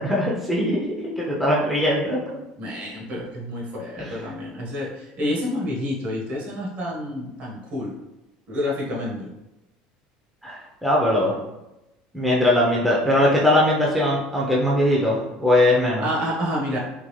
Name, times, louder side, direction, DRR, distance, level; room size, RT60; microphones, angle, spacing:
voice 1, 0.0-2.2 4.0-4.3 10.4-11.3 12.1-16.1, left 1 dB, ahead, -5 dB, 0.7 m, -21 dB
voice 2, 2.6-7.9 8.5-9.3 16.0-16.8, left 1 dB, 50° right, -3 dB, 1.2 m, -29 dB
3.7 x 2.4 x 3.1 m, 0.94 s
supercardioid pair, 125°, 3 cm